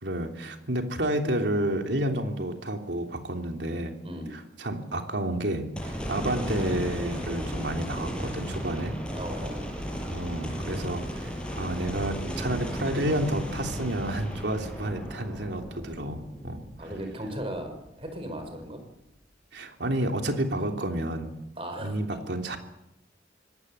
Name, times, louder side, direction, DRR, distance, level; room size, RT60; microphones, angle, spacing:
voice 1, 0.0-3.9 4.3-9.0 10.1-16.6 19.5-21.3 21.8-22.6, right 1 dB, 75° right, 4 dB, 3.3 m, -30 dB
voice 2, 4.0-4.3 9.2-9.7 16.8-18.8 21.6-22.2, right 1 dB, 30° right, 7 dB, 5.3 m, -37 dB
sound 1, 5.8-18.1 18.5-18.6 22.0-22.1, equal, 5° left, 6.1 m, -35 dB
26.0 x 19.0 x 8.3 m, 0.87 s
head